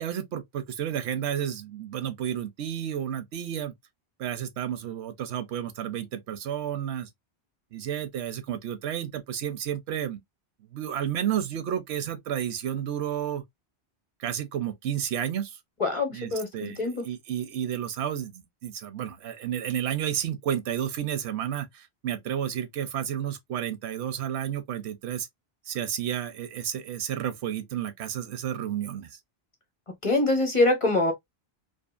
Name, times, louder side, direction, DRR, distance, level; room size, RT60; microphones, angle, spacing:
voice 1, 0.0-3.7 4.2-7.1 7.7-10.2 10.7-13.4 14.2-15.6 16.1-25.3 25.7-29.2, right 10 dB, 85° right, 0.9 m, -31 dB
voice 2, 15.8-17.0 30.0-31.1, left 2 dB, 35° left, 0.7 m, -24 dB
2.6 x 2.4 x 2.3 m
omnidirectional pair, 1.1 m